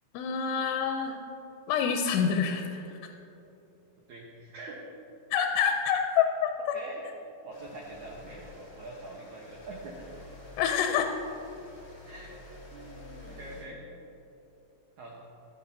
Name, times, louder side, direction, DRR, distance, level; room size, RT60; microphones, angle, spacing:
voice 1, 0.1-1.2 1.7-3.0 5.3-6.5 10.6-11.1, left 7 dB, 85° left, 4 dB, 2.7 m, -27 dB
voice 2, 4.1-4.9 6.7-7.0 7.4-10.1 12.1-13.9 15.0-15.2, right 2 dB, 75° right, -2 dB, 1.7 m, -44 dB
sound 1, 7.5-13.7, left 2 dB, 60° left, 0.9 m, -49 dB
15.5 x 11.5 x 2.7 m, 2.9 s
omnidirectional pair, 4.8 m